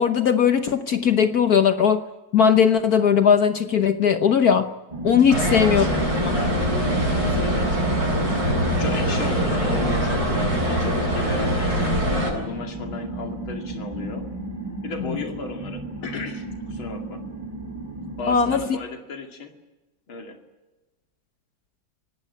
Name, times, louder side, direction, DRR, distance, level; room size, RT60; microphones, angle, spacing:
voice 1, 0.0-2.0 2.3-4.7 5.0-5.8 15.1-15.2 18.3-18.6, left 7 dB, 55° left, 9 dB, 1.4 m, -18 dB
sound 1, 4.9-18.7, right 2 dB, 15° right, 2.5 m, -33 dB
voice 2, 5.3-6.7 7.1-8.1 8.7-14.3 14.8-17.2 18.2-19.5 20.1-20.4, left 3 dB, 90° left, 4 dB, 3.2 m, -34 dB
sound 2, 5.3-12.3, equal, 45° right, 8.1 m, -23 dB
24.5 x 18.5 x 9.6 m, 1.1 s
omnidirectional pair, 2.2 m